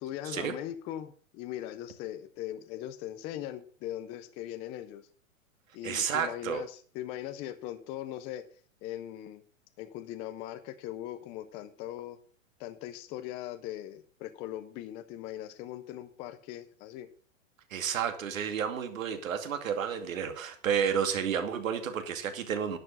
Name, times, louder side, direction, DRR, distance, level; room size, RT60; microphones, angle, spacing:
voice 1, 0.0-5.1 5.7-8.4 8.8-9.4 9.8-12.2 12.6-17.1, left 12 dB, 15° left, 10 dB, 0.4 m, -40 dB
voice 2, 5.8-6.6 17.7-22.8, right 7 dB, 75° right, 7 dB, 2.4 m, -31 dB
11.0 x 7.8 x 6.1 m, 0.43 s
hypercardioid pair, 140°, 40 cm